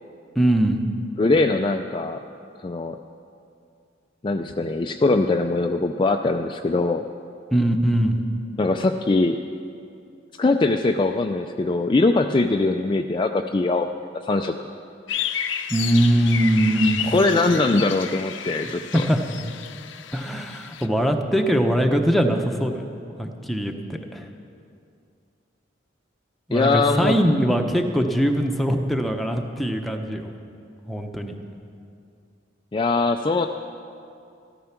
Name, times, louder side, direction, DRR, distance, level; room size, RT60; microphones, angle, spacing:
voice 1, 0.4-0.8 7.5-8.2 15.7-17.1 18.6-19.5 20.1-22.8 23.2-24.3 26.5-30.3 30.9-31.4, right 1 dB, ahead, 3 dB, 0.9 m, -22 dB
voice 2, 1.2-2.2 2.6-3.0 4.2-7.0 8.6-9.4 10.4-13.9 14.2-14.5 17.1-19.0 26.5-27.2 32.7-33.5, left 3 dB, 25° left, 4 dB, 0.4 m, -21 dB
sound 1, 15.1-20.9, left 9 dB, 75° left, 0.7 m, -31 dB
14.0 x 13.0 x 5.9 m, 2.5 s
head